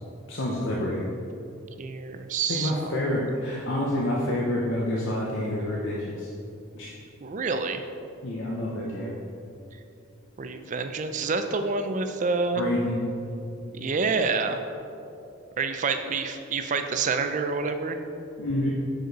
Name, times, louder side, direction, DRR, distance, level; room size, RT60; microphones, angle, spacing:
voice 1, 0.3-1.0 2.5-6.3 6.7-6.9 8.2-9.1 12.5-13.0 18.4-18.7, left 1 dB, 60° left, -4 dB, 0.7 m, -28 dB
voice 2, 1.8-2.7 7.2-7.8 10.4-12.6 13.7-14.6 15.6-18.0, right 4 dB, 35° right, 7 dB, 0.3 m, -27 dB
6.3 x 5.0 x 3.9 m, 2.7 s
head